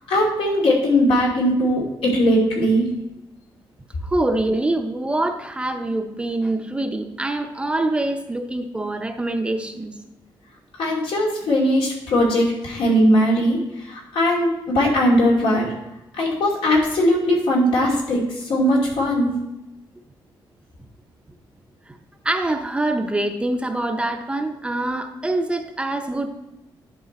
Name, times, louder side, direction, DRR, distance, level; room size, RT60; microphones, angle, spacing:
voice 1, 0.1-2.9 10.8-15.7 16.2-19.4, equal, 90° left, -3 dB, 2.7 m, -19 dB
voice 2, 4.0-9.9 22.2-26.3, right 2 dB, 10° right, 5 dB, 0.6 m, -24 dB
10.5 x 4.8 x 4.1 m, 0.95 s
wide cardioid pair, 160°, 9 cm